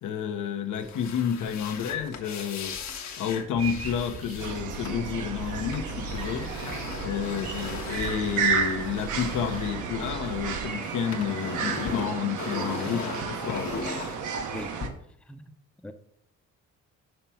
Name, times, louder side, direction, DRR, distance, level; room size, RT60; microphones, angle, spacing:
voice 1, 0.0-2.8 3.2-6.5 7.0-13.7, left 8 dB, 80° left, 1.0 m, -30 dB
sound 1, 0.7-10.5 10.8-14.9, left 5 dB, 65° left, 1.2 m, -39 dB
sound 2, 3.5-10.7, right 4 dB, 55° right, 0.8 m, -39 dB
sound 3, 4.4-14.9, right 6 dB, 75° right, 1.0 m, -33 dB
voice 2, 14.5-14.8 15.3-15.4 15.8-15.9, left 1 dB, 5° left, 0.6 m, -39 dB
5.7 x 4.6 x 5.7 m
cardioid pair, 90°, 30 cm